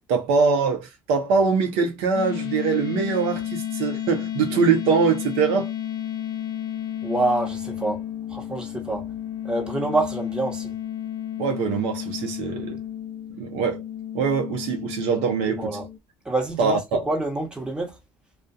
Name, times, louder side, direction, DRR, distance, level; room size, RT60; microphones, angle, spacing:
voice 1, 0.1-5.7 11.4-12.8 13.4-13.8 14.1-15.8 16.6-17.0, right 5 dB, 75° right, 0.7 m, -23 dB
sound 1, 2.1-16.0, left 11 dB, 40° left, 0.7 m, -32 dB
voice 2, 7.0-8.0 8.3-9.0 9.4-10.7 15.5-15.9 16.2-16.8 17.1-17.9, right 2 dB, 10° right, 1.1 m, -26 dB
2.4 x 2.2 x 2.6 m
supercardioid pair, 85°, 10 cm